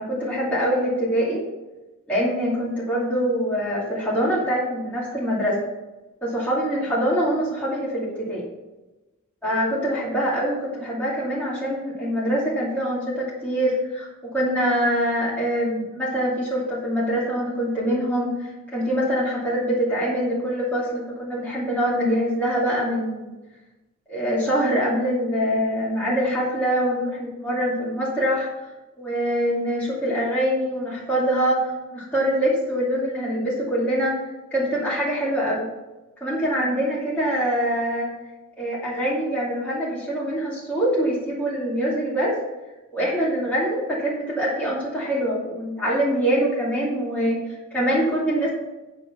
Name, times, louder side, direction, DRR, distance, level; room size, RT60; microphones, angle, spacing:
voice 1, 0.0-1.4 2.1-5.6 6.2-8.4 9.4-14.1 14.3-23.3 24.1-28.5 29.0-34.1 34.5-35.7 36.2-38.1 38.6-42.3 42.9-47.4 47.7-48.5, equal, 5° left, -9 dB, 2.6 m, -24 dB
9.8 x 5.9 x 5.7 m, 1.1 s
head